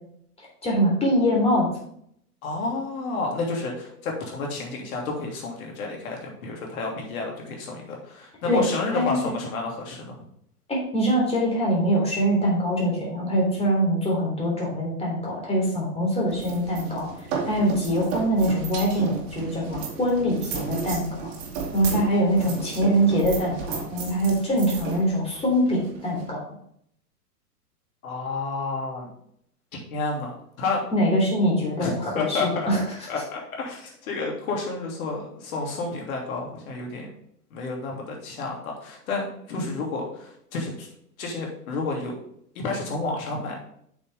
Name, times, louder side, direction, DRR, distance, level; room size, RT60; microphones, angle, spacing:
voice 1, 0.6-1.7 8.5-8.6 8.9-9.2 10.7-17.1 17.4-21.3 21.7-26.4 30.9-32.8, equal, 10° left, -3 dB, 3.4 m, -23 dB
voice 2, 2.4-10.2 28.0-29.1 29.7-30.8 31.8-32.7 33.1-37.1 37.5-40.9 41.2-42.1 42.5-43.6, left 3 dB, 60° left, 0 dB, 3.0 m, -30 dB
sound 1, 16.3-26.3, right 5 dB, 40° right, 2.7 m, -34 dB
8.0 x 6.4 x 3.6 m, 0.70 s
hypercardioid pair, 110°, 47 cm